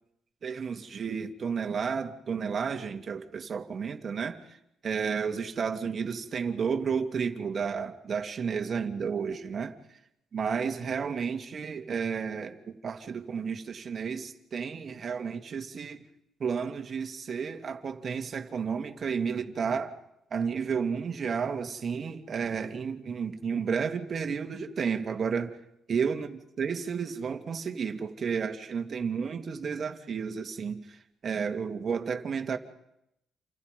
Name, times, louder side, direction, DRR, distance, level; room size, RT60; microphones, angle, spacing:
voice 1, 0.4-10.0 10.3-16.1 16.4-20.0 20.3-25.6 25.9-32.6, right 6 dB, 50° right, 2.5 m, -32 dB
29.0 x 28.0 x 5.4 m
cardioid pair, 90°, 0 cm